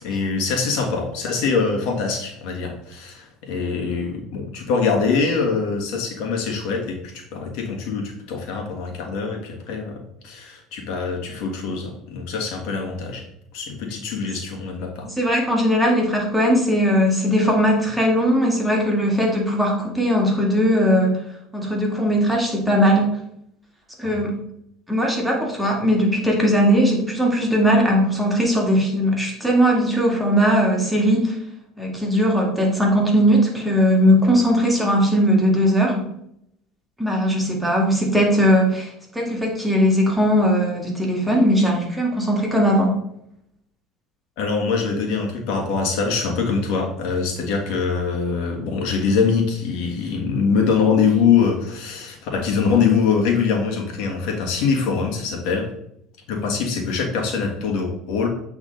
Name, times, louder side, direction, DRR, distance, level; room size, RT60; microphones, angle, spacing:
voice 1, 0.0-10.0 10.2-13.2 13.5-15.1 24.0-24.2 44.4-55.7 56.3-58.3, left 5 dB, 70° left, 1 dB, 1.6 m, -23 dB
voice 2, 15.2-21.2 21.5-23.2 24.0-24.4 24.9-31.4 31.8-36.1 37.0-43.0, equal, 5° right, -1 dB, 2.0 m, -19 dB
8.2 x 3.6 x 3.9 m, 0.74 s
supercardioid pair, 100°, 0 cm